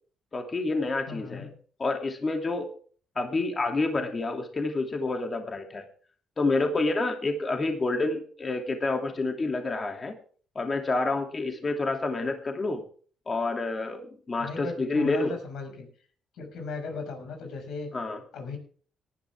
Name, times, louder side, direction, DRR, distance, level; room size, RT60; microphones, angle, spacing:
voice 1, 0.3-1.5 1.8-2.7 3.1-5.8 6.4-10.1 10.5-12.8 13.3-15.4 17.9-18.2, left 3 dB, 35° left, 4 dB, 2.8 m, -28 dB
voice 2, 1.1-1.5 14.4-15.9 16.3-17.9 18.3-18.6, left 4 dB, 75° left, 5 dB, 6.2 m, -37 dB
18.5 x 12.0 x 3.6 m, 0.43 s
cardioid pair, 90°, 0 cm